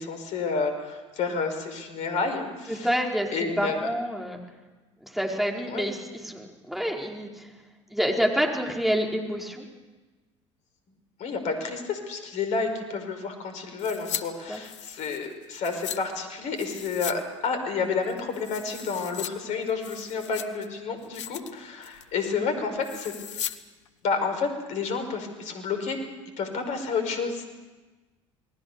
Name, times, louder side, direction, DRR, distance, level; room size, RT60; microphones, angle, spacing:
voice 1, 0.0-2.9 3.3-3.8 5.7-5.9 11.2-23.1 24.0-26.0 26.4-27.4, left 4 dB, 50° left, 7 dB, 5.3 m, -30 dB
voice 2, 2.7-4.4 5.0-7.5 7.9-9.6 14.5-14.6 22.4-22.7, equal, ahead, 0 dB, 4.8 m, -28 dB
sound 1, 13.8-14.2 14.5-16.0 16.6-17.2 17.4-17.5 18.0-19.3 19.7-20.7 21.0-21.5 21.8-22.1 22.8-23.6 23.9-24.0, left 11 dB, 70° left, 1.0 m, -37 dB
28.5 x 20.0 x 7.0 m, 1.2 s
figure-of-eight pair, 65°, 16 cm